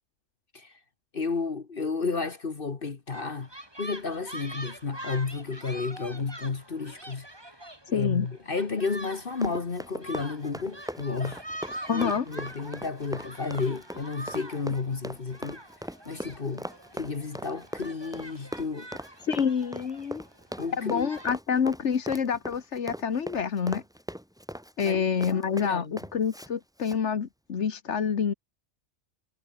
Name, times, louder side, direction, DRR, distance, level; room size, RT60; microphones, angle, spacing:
voice 1, 1.1-3.5 3.8-7.3 7.9-11.4 11.9-15.6 16.0-16.7 16.9-18.9 20.6-21.1 24.8-25.0 25.3-26.0, left 4 dB, 50° left, 1.7 m, -32 dB
sound 1, 3.1-21.3, right 1 dB, 20° right, 3.7 m, -44 dB
voice 2, 7.9-8.3 11.9-12.2 19.2-20.2 20.8-23.8 24.8-28.3, left 6 dB, 75° left, 1.6 m, -27 dB
Run, 9.1-26.5 26.8-27.0, equal, 5° right, 3.3 m, -40 dB
omnidirectional pair, 1.2 m